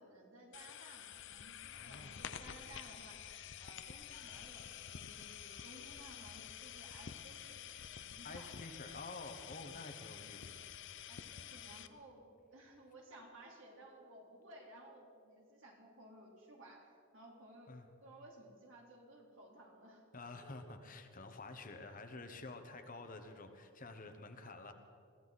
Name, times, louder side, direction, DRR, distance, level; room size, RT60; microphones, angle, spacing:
voice 1, 0.0-3.3 3.6-8.5 11.1-17.7 18.0-20.0 20.4-20.5, right 1 dB, 60° right, -1 dB, 3.3 m, -58 dB
sound 1, 0.5-11.9, left 9 dB, 55° left, 0.6 m, -49 dB
voice 2, 1.7-2.2 8.2-10.7 17.7-17.9 20.1-24.7, left 3 dB, 40° left, 6 dB, 1.1 m, -50 dB
21.5 x 15.5 x 4.1 m, 2.4 s
head